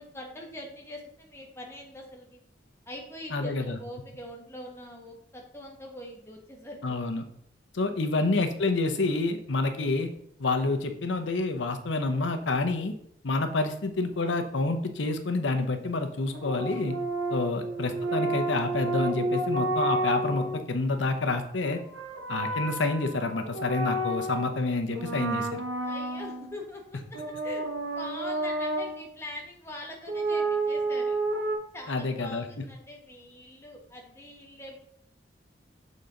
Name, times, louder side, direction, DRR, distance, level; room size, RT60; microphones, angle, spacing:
voice 1, 0.0-2.4 2.9-7.0 25.8-27.0 27.4-31.2 31.7-34.8, left 1 dB, 15° left, 0 dB, 1.0 m, -43 dB
voice 2, 3.3-3.8 6.8-7.2 7.7-10.1 10.4-12.9 13.2-17.0 17.3-21.8 22.3-25.6 31.9-32.6, left 3 dB, 80° left, 7 dB, 0.8 m, -28 dB
sound 1, 16.3-20.6 21.7-24.6 24.9-26.6 27.1-29.0 30.1-31.6, right 2 dB, 80° right, 0.9 m, -30 dB
6.9 x 4.1 x 3.8 m, 0.68 s
head